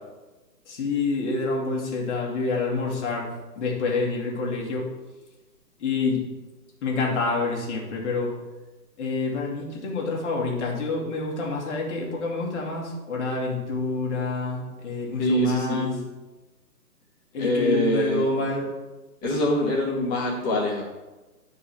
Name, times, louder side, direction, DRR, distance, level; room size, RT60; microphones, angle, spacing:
voice 1, 0.7-3.3 3.6-4.9 5.8-6.2 6.8-8.3 9.0-15.9 17.3-18.7, left 3 dB, 45° left, -1 dB, 2.2 m, -27 dB
voice 2, 15.2-15.9 17.4-18.2 19.2-20.8, equal, 15° left, -3 dB, 1.6 m, -24 dB
10.0 x 4.7 x 4.4 m, 1.1 s
figure-of-eight pair, 140°, 48 cm